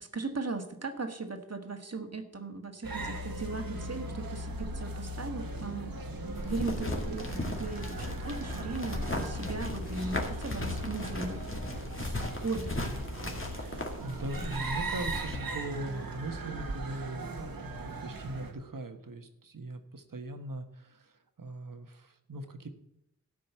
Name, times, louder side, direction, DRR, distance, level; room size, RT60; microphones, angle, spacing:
voice 1, 0.0-5.9 6.4-11.4 12.0-12.8, right 3 dB, 50° right, 6 dB, 1.5 m, -38 dB
sound 1, 2.8-18.5, right 2 dB, 85° right, 1.6 m, -39 dB
sound 2, 6.4-15.4, left 1 dB, 35° left, 2.2 m, -37 dB
voice 2, 13.5-22.7, right 2 dB, 70° right, 8 dB, 1.3 m, -40 dB
13.5 x 5.3 x 8.1 m, 0.79 s
wide cardioid pair, 55°, 34 cm